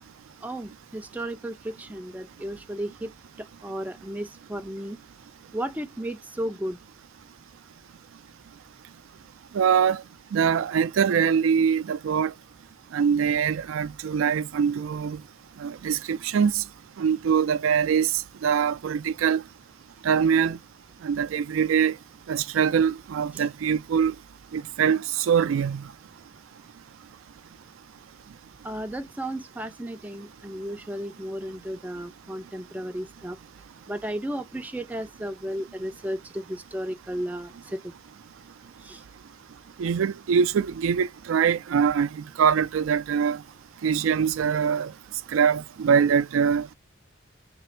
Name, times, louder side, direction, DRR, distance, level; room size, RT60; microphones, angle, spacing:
voice 1, 0.4-3.1 3.4-5.0 5.5-6.8 23.3-23.4 28.6-33.4 33.9-37.9 38.8-39.0, right 1 dB, 10° right, 0.4 m, -34 dB
voice 2, 9.5-10.0 10.3-12.3 12.9-15.2 15.6-16.6 17.0-18.1 18.4-19.4 20.0-20.6 21.0-22.0 22.3-24.1 24.5-25.8 39.8-43.4 43.8-44.9 45.3-46.7, right 7 dB, 80° right, 0.4 m, -23 dB
3.3 x 2.5 x 4.3 m
head